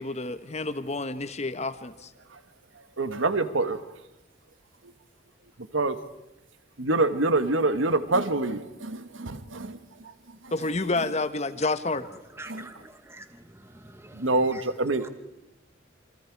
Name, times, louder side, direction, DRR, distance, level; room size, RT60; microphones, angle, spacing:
voice 1, 0.0-2.1 10.5-12.1, left 3 dB, 35° left, 11 dB, 1.3 m, -29 dB
voice 2, 3.0-3.8 4.8-4.9 5.6-6.0 6.8-10.5 12.5-12.7 14.1-15.1, right 2 dB, 85° right, 11 dB, 1.4 m, -26 dB
voice 3, 12.3-15.1, right 2 dB, 15° right, 9 dB, 0.9 m, -45 dB
28.0 x 24.5 x 4.7 m, 0.95 s
head